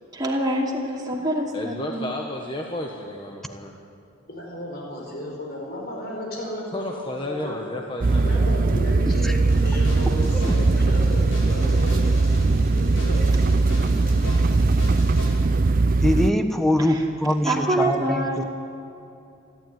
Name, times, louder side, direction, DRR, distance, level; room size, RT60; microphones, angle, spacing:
voice 1, 0.1-2.1 16.8-17.1 17.4-18.5, right 1 dB, 20° right, -1 dB, 2.8 m, -26 dB
voice 2, 1.5-3.8 6.7-8.5 13.8-14.4, left 1 dB, 20° left, 1 dB, 1.4 m, -33 dB
voice 3, 4.3-6.8 7.2-7.6 8.2-12.3 12.7-13.3 14.0-14.3, equal, 45° left, -1 dB, 4.9 m, -34 dB
sound 1, 8.0-16.3, right 3 dB, 40° right, 0.4 m, -20 dB
sound 2, 9.5-15.3, equal, 65° left, 7.4 m, -34 dB
voice 4, 16.0-18.5, left 1 dB, ahead, 7 dB, 1.1 m, -23 dB
28.5 x 12.5 x 9.4 m, 2.8 s
head